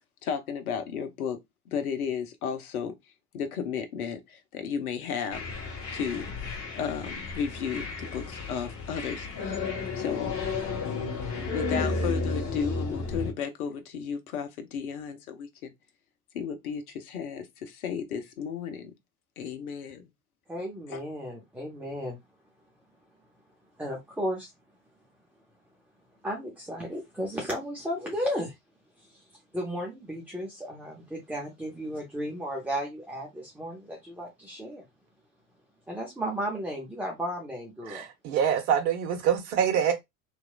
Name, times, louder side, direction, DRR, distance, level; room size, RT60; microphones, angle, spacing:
voice 1, 0.2-1.4 1.7-2.9 3.3-5.4 5.9-6.3 6.7-9.7 9.9-10.4 11.5-15.7 16.3-18.9 19.4-20.1 20.9-21.0, left 7 dB, 75° left, 0.7 m, -33 dB
sound 1, 5.3-13.3, left 4 dB, 35° left, 1.1 m, -33 dB
voice 2, 20.5-22.2 23.8-24.5 26.2-28.6 29.0-29.3 29.5-34.8 35.9-38.1, equal, 5° right, 0.8 m, -34 dB
voice 3, 37.9-39.9, right 8 dB, 55° right, 0.8 m, -25 dB
2.9 x 2.4 x 2.2 m
figure-of-eight pair, 70°, 44 cm